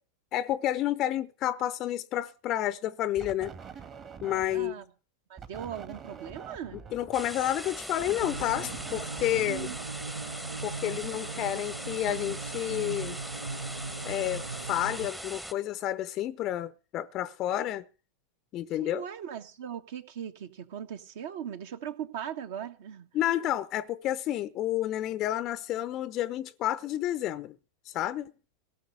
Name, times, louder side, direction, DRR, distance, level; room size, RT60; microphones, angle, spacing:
voice 1, 0.3-3.5 4.2-4.8 6.9-9.7 10.6-13.2 14.0-17.9 18.5-19.0 23.1-27.6 27.9-28.3, left 13 dB, 35° left, 0.6 m, -30 dB
sound 1, 3.2-4.8 5.4-10.5, right 7 dB, 30° right, 1.6 m, -46 dB
voice 2, 4.5-4.9 5.3-6.8 9.5-9.8 18.8-23.1, right 9 dB, 55° right, 1.5 m, -39 dB
sound 2, 7.1-15.5, equal, 5° right, 1.0 m, -41 dB
sound 3, 8.2-15.1, right 4 dB, 75° right, 0.7 m, -39 dB
17.5 x 6.3 x 7.9 m
figure-of-eight pair, 90°, 0 cm